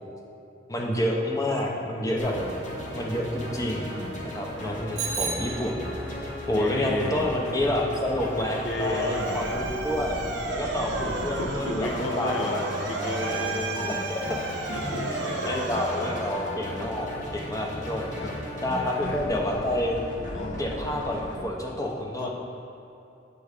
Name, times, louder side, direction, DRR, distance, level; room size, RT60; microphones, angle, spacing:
voice 1, 0.7-2.3 2.9-3.9 4.2-5.8 6.5-10.2 10.5-12.6 13.8-14.4 15.4-18.1 18.6-20.1 20.6-22.3, left 1 dB, 20° left, -1 dB, 0.7 m, -28 dB
sound 1, 2.2-21.4, equal, 40° left, 1.0 m, -36 dB
Bicycle bell, 5.0-6.2, right 5 dB, 35° right, 0.9 m, -33 dB
voice 2, 6.5-7.3 8.6-9.7 10.7-14.1 14.7-16.3 16.8-16.9 18.2-19.3 20.3-20.6 22.2-22.3, left 2 dB, 75° left, 1 dB, 0.8 m, -34 dB
Motor vehicle (road) / Siren, 8.3-16.9, right 3 dB, 65° right, 0.7 m, -34 dB
8.2 x 3.1 x 4.9 m, 2.8 s
head